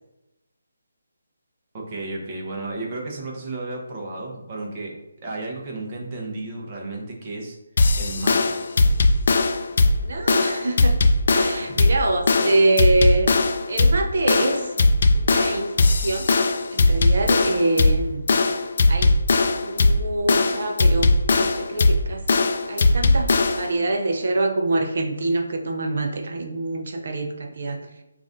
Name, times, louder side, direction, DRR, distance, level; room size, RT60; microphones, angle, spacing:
voice 1, 1.7-4.9 5.2-7.6 8.0-8.5 11.6-11.7, right 2 dB, 30° right, -1 dB, 0.9 m, -33 dB
sound 1, 7.8-23.7, left 3 dB, 50° left, 0.3 m, -19 dB
voice 2, 10.0-11.0 11.3-13.3 13.7-14.7 15.1-16.3 16.7-18.3 18.9-19.1 19.5-27.8, right 2 dB, 55° right, 3 dB, 0.6 m, -25 dB
5.4 x 2.5 x 2.6 m, 0.94 s
hypercardioid pair, 165°, 0 cm